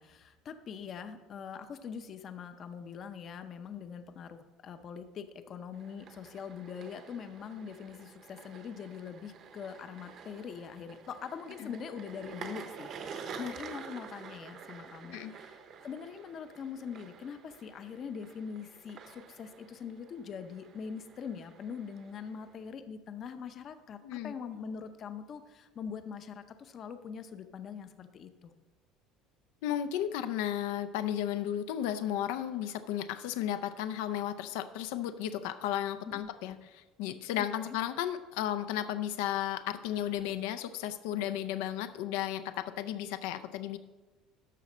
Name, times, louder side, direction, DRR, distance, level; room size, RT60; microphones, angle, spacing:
voice 1, 0.0-28.5 36.0-36.6 37.7-37.8, left 6 dB, 35° left, 9 dB, 0.5 m, -43 dB
sound 1, 5.7-22.7, right 6 dB, 40° right, 0.8 m, -49 dB
voice 2, 24.0-24.3 29.6-43.8, left 11 dB, 90° left, 11 dB, 0.5 m, -34 dB
12.5 x 4.2 x 6.2 m, 1.2 s
cardioid pair, 160°, 0 cm